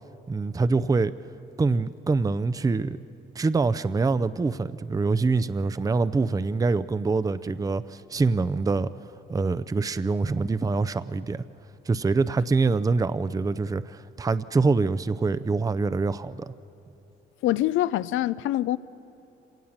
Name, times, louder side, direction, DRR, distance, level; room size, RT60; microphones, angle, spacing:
voice 1, 0.3-1.1 1.6-3.0 3.4-8.9 9.3-11.4 11.9-16.5, right 3 dB, 15° right, 0.5 m, -25 dB
voice 2, 17.4-18.8, left 14 dB, 85° left, 0.5 m, -24 dB
25.5 x 18.5 x 7.3 m
cardioid pair, 90°, 20 cm